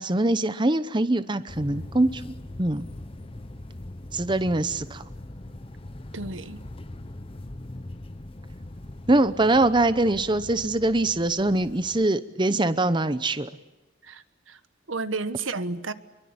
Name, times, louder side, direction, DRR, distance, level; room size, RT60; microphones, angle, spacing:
voice 1, 0.0-2.9 4.1-5.0 9.1-13.5, right 2 dB, 25° right, 13 dB, 0.8 m, -23 dB
sound 1, 1.5-12.1, left 1 dB, 30° left, 0.9 m, -41 dB
voice 2, 6.1-6.6 14.1-14.2 14.5-14.6 14.9-15.9, right 3 dB, 85° right, 13 dB, 1.3 m, -31 dB
27.0 x 23.5 x 8.7 m, 1.1 s
head